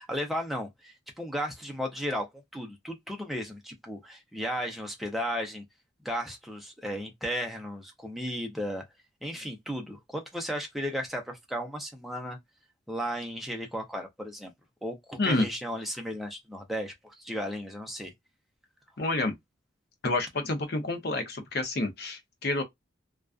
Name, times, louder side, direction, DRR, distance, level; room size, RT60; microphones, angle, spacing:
voice 1, 0.0-2.3 2.5-5.6 6.0-8.8 9.2-12.4 12.9-14.5 14.8-18.1, equal, ahead, 0.5 m, -35 dB
voice 2, 19.0-19.3 20.0-22.6, left 2 dB, 50° left, 0.6 m, -28 dB
2.4 x 2.3 x 2.3 m
head